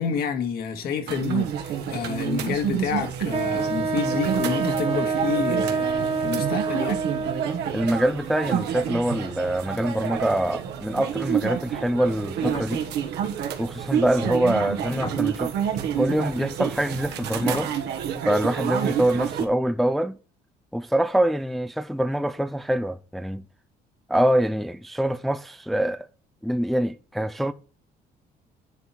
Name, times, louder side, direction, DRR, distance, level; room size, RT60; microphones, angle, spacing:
voice 1, 0.0-7.0, left 6 dB, 65° left, 1.9 m, -29 dB
sound 1, 1.1-19.5, right 9 dB, 80° right, 1.4 m, -29 dB
Wind instrument woodwind instrument, 3.3-7.7, right 4 dB, 35° right, 1.7 m, -27 dB
voice 2, 7.7-12.8 13.6-15.5 16.0-17.7 18.2-20.2 20.7-23.4 24.1-26.1 26.4-27.5, right 1 dB, ahead, 0.4 m, -24 dB
sound 2, 12.4-15.6 16.6-17.7, left 4 dB, 30° left, 1.2 m, -37 dB
10.5 x 4.1 x 4.5 m
cardioid pair, 110°, 17 cm